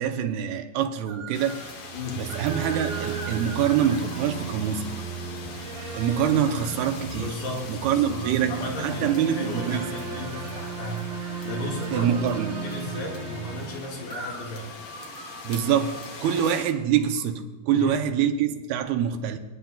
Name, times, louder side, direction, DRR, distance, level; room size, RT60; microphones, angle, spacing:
voice 1, 0.0-1.7 2.1-4.9 6.0-7.3 7.7-9.8 11.9-12.6 15.4-19.4, right 9 dB, 85° right, 2.6 m, -25 dB
sound 1, 1.1-1.8 2.3-5.1 5.8-8.5 9.7-13.1 14.1-17.2, right 2 dB, 40° right, 0.9 m, -44 dB
sound 2, 1.3-16.7, left 4 dB, 85° left, 1.3 m, -42 dB
sound 3, 1.8-14.7, right 7 dB, 60° right, 1.7 m, -36 dB
voice 2, 1.9-2.3 7.2-12.1 12.6-14.7 17.7-18.1, left 2 dB, 65° left, 3.4 m, -35 dB
28.5 x 9.6 x 2.3 m
omnidirectional pair, 4.4 m